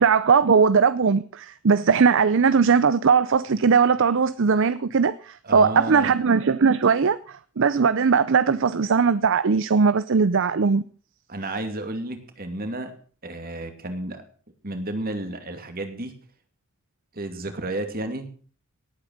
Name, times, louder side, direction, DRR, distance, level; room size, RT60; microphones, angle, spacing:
voice 1, 0.0-10.8, right 5 dB, 60° right, 0.6 m, -19 dB
voice 2, 5.4-6.2 11.3-12.9 13.2-14.2 14.6-16.1 17.1-18.3, right 1 dB, 40° right, 2.5 m, -32 dB
18.0 x 8.8 x 6.4 m
head